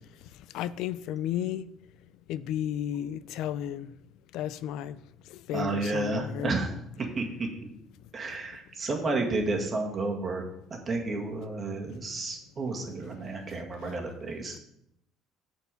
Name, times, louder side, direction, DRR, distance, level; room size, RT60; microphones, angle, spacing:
voice 1, 0.5-1.6 2.3-3.9 4.3-5.0 5.5-6.5 13.8-14.0, left 11 dB, 70° left, 0.4 m, -33 dB
voice 2, 5.5-7.5 8.1-10.4 10.7-14.6, right 3 dB, 30° right, 2.0 m, -31 dB
8.3 x 4.5 x 6.9 m
cardioid pair, 125°, 0 cm